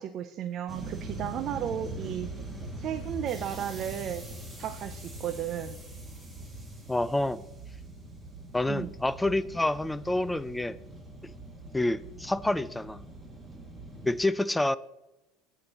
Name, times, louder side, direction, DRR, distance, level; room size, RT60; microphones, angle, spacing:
voice 1, 0.0-2.3 2.8-4.2 4.6-5.8 8.7-8.9, right 10 dB, 50° right, 0.5 m, -34 dB
sound 1, 0.7-14.2, right 2 dB, 15° right, 2.1 m, -42 dB
voice 2, 6.9-7.4 8.5-10.8 11.7-13.0 14.1-14.8, left 2 dB, 10° left, 0.4 m, -28 dB
15.0 x 5.8 x 2.9 m
hypercardioid pair, 80°, 0 cm